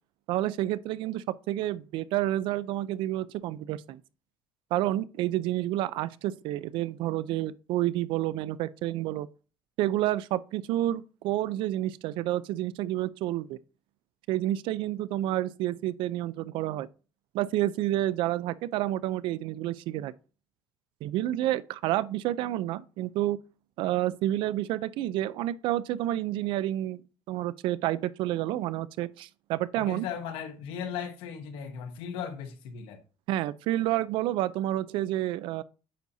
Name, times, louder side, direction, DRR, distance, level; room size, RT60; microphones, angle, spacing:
voice 1, 0.3-4.0 4.7-9.3 9.8-13.6 14.3-16.9 17.3-20.1 21.0-23.4 23.8-27.0 27.3-30.0 33.3-35.6, right 14 dB, 70° right, 0.4 m, -29 dB
voice 2, 29.7-33.0, left 7 dB, 85° left, 1.0 m, -37 dB
9.2 x 4.2 x 2.6 m
cardioid pair, 145°, 9 cm